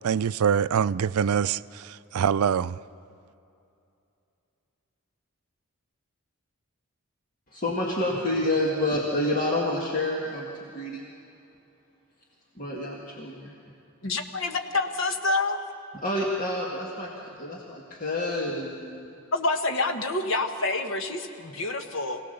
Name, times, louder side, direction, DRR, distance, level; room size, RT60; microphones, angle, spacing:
voice 1, 0.0-2.8, right 7 dB, 80° right, 0.4 m, -24 dB
voice 2, 7.5-11.0 12.6-13.5 16.0-19.1, left 1 dB, 40° left, 2.0 m, -28 dB
voice 3, 14.0-15.6 19.3-22.2, left 2 dB, 60° left, 1.4 m, -27 dB
25.0 x 17.5 x 6.8 m
head